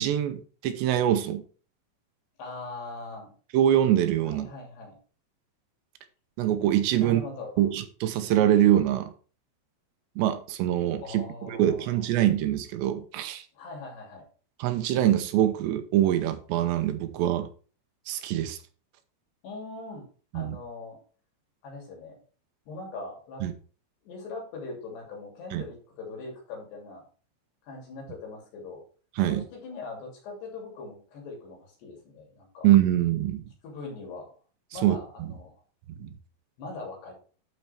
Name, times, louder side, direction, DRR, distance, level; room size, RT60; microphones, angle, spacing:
voice 1, 0.0-1.4 3.5-4.5 6.4-7.2 7.6-9.1 10.2-13.4 14.6-17.5 18.1-18.6 20.3-20.6 23.4-23.5 25.5-25.6 29.2-29.4 32.6-33.4 34.8-35.0 36.0-36.1, right 12 dB, 80° right, 8 dB, 3.0 m, -24 dB
voice 2, 2.4-3.3 4.2-5.0 7.0-7.7 11.0-12.0 13.5-14.3 19.4-20.1 20.3-21.0 21.6-22.2 22.7-23.5 24.0-27.0 27.6-28.8 29.3-32.7 33.6-34.3 34.7-35.5 36.6-37.1, left 3 dB, 70° left, 0 dB, 4.9 m, -41 dB
11.5 x 4.5 x 4.4 m, 0.39 s
omnidirectional pair, 5.0 m